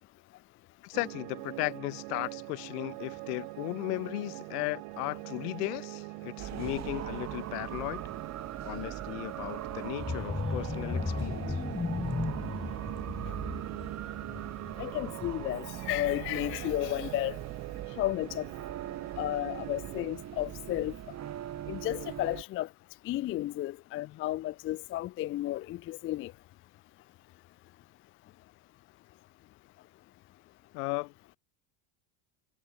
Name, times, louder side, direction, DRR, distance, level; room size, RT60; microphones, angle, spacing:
voice 1, 0.8-8.0 8.6-11.6 30.7-31.1, left 26 dB, 75° left, 2.6 m, -36 dB
sound 1, 0.9-20.1, right 35 dB, 55° right, 0.8 m, -43 dB
sound 2, 6.4-22.4, right 11 dB, 35° right, 3.4 m, -41 dB
sound 3, 9.9-15.7 16.1-16.3 16.6-16.7, left 4 dB, 10° left, 1.5 m, -36 dB
voice 2, 14.8-17.4 18.0-18.4 19.2-20.9 21.7-22.7 23.1-26.3, left 15 dB, 30° left, 0.5 m, -33 dB
supercardioid pair, 135°, 47 cm